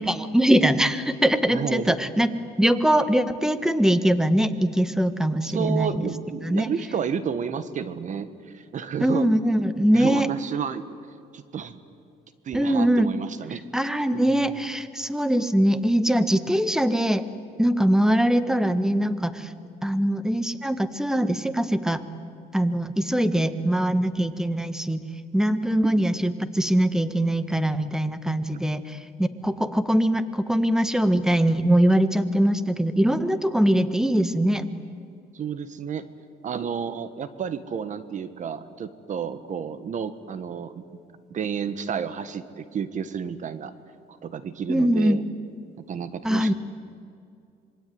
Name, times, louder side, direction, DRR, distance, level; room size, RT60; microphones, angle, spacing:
voice 1, 0.0-2.3 2.6-6.0 6.4-6.7 9.0-10.3 12.5-13.1 13.7-17.3 17.6-19.5 19.8-22.0 22.5-25.0 25.3-34.7 44.7-45.2 46.2-46.5, right 1 dB, 5° right, 12 dB, 1.5 m, -22 dB
voice 2, 1.5-2.0 5.4-8.3 8.5-9.3 9.9-10.9 11.3-11.8 12.4-13.6 14.3-14.5 35.3-36.0 36.4-41.0 41.3-43.7 44.1-45.2 45.8-46.5, right 7 dB, 45° right, 13 dB, 1.5 m, -31 dB
26.5 x 22.5 x 9.5 m, 2.4 s
cardioid pair, 110°, 17 cm